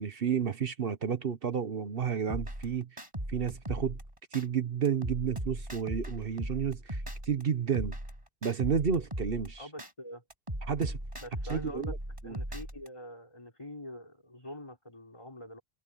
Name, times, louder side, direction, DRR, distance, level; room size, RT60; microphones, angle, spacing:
voice 1, 0.0-3.0 3.3-4.0 4.3-8.0 8.4-9.7 10.6-11.0 11.5-12.0 12.2-12.4, right 7 dB, 65° right, 1.2 m, -31 dB
sound 1, 2.3-4.4 4.8-7.4 7.7-9.9 10.3-12.9, right 1 dB, 30° right, 7.2 m, -38 dB
voice 2, 9.6-10.2 11.2-11.9 12.2-15.6, left 1 dB, 30° left, 4.0 m, -45 dB
omnidirectional pair, 1.0 m